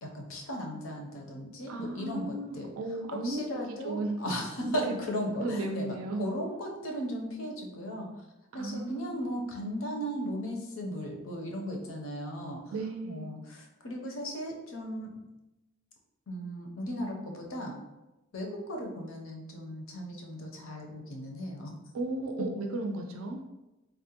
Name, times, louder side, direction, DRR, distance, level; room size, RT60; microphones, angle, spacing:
voice 1, 0.0-2.7 3.2-8.2 8.5-12.7 13.0-15.1 16.3-17.8 18.3-21.7, equal, 70° left, 1 dB, 0.6 m, -36 dB
voice 2, 1.7-4.2 4.6-4.9 5.4-6.3 8.5-9.4 12.7-13.3 21.9-23.4, right 2 dB, 80° right, 3 dB, 0.4 m, -35 dB
3.6 x 2.1 x 2.8 m, 1.0 s
head